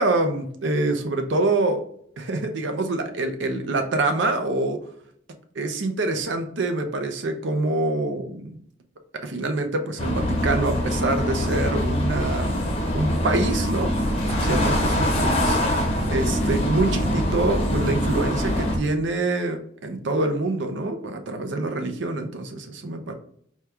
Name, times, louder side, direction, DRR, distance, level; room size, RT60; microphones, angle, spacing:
voice 1, 0.0-1.8 2.2-4.8 5.5-8.6 9.2-13.9 14.2-15.6 16.1-23.2, right 2 dB, 70° right, 6 dB, 0.6 m, -26 dB
sound 1, 10.0-18.8, equal, 30° left, 0.7 m, -23 dB
4.5 x 2.3 x 3.4 m, 0.65 s
head